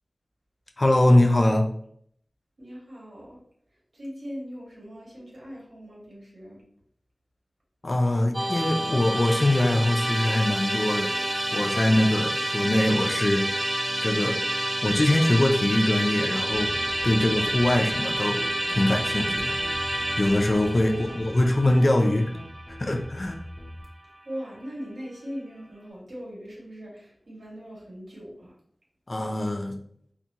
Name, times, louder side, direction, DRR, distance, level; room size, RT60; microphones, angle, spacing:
voice 1, 0.8-1.7 7.8-11.1 11.5-13.5 14.0-14.4 14.8-16.7 17.0-18.4 18.7-19.6 20.2-22.3 22.7-23.4 29.1-29.8, left 1 dB, 45° left, 3 dB, 0.4 m, -23 dB
voice 2, 2.6-3.4 3.9-6.6 20.9-21.2 24.2-28.5, equal, 80° right, -6 dB, 1.4 m, -40 dB
Musical instrument, 8.3-23.5, right 1 dB, 25° right, 0.7 m, -29 dB
sound 1, 16.5-23.8, equal, 15° left, 1.1 m, -43 dB
4.1 x 2.2 x 2.7 m, 0.68 s
wide cardioid pair, 70°, 0 cm